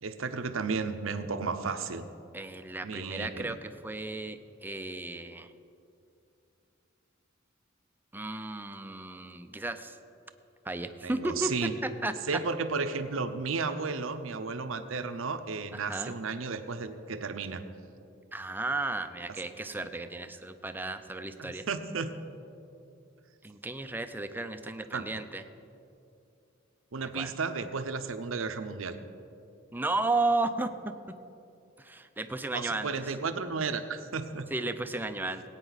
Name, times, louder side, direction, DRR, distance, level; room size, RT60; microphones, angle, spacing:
voice 1, 0.0-2.0 2.8-3.6 11.0-11.7 12.3-17.6 21.4-22.1 24.9-25.0 26.9-29.0 32.5-34.5, right 4 dB, 85° right, 9 dB, 0.7 m, -33 dB
voice 2, 2.3-3.6 3.8-5.5 8.1-9.9 10.7-11.5 12.0-12.1 15.7-16.1 18.3-21.6 23.4-25.4 27.2-27.3 29.7-30.7 31.8-32.9 34.5-35.4, right 2 dB, 10° right, 9 dB, 0.5 m, -33 dB
18.5 x 9.0 x 4.1 m, 2.7 s
head